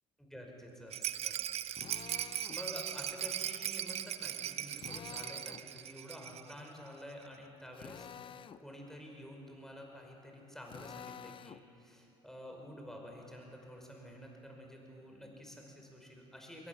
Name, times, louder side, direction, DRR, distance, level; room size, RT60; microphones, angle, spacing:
voice 1, 0.2-1.4 2.5-8.1 8.6-16.7, equal, 5° left, 1 dB, 5.2 m, -49 dB
Rattle, 0.9-6.6 6.9-7.0 7.2-7.3, right 11 dB, 45° right, 0.7 m, -39 dB
Drill, 1.8-2.6 4.7-5.7 7.7-8.6 10.7-11.6, left 8 dB, 35° left, 0.6 m, -49 dB
22.0 x 17.5 x 7.3 m, 2.8 s
hypercardioid pair, 70°, 14 cm